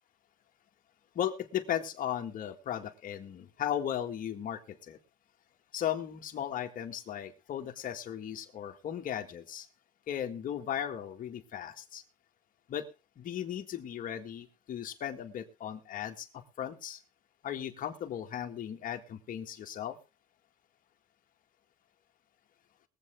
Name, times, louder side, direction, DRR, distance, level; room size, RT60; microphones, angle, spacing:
voice 1, 1.1-5.0 5.7-9.7 10.1-12.0 12.7-12.8 13.2-17.0 17.4-20.0, left 10 dB, 55° left, 4 dB, 1.8 m, -36 dB
21.5 x 7.9 x 3.6 m, 0.30 s
cardioid pair, 110°, 17 cm